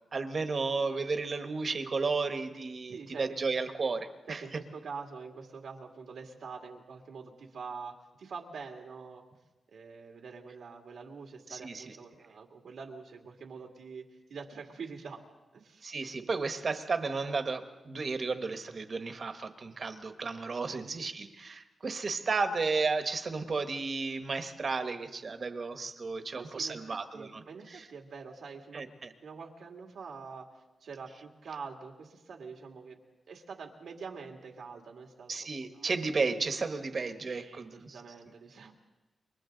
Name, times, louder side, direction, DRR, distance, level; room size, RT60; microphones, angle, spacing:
voice 1, 0.1-4.4 11.5-12.0 15.8-27.9 28.7-29.1 35.3-38.0, right 4 dB, 40° right, 8 dB, 1.2 m, -33 dB
voice 2, 2.9-3.4 4.3-9.2 9.7-15.2 15.5-15.9 20.6-20.9 26.3-28.8 29.2-30.5 30.8-33.0 33.3-35.4 35.7-35.9 37.2-38.7, right 5 dB, 85° right, 2 dB, 2.5 m, -45 dB
28.5 x 24.0 x 3.9 m, 1.1 s
wide cardioid pair, 155°, 0 cm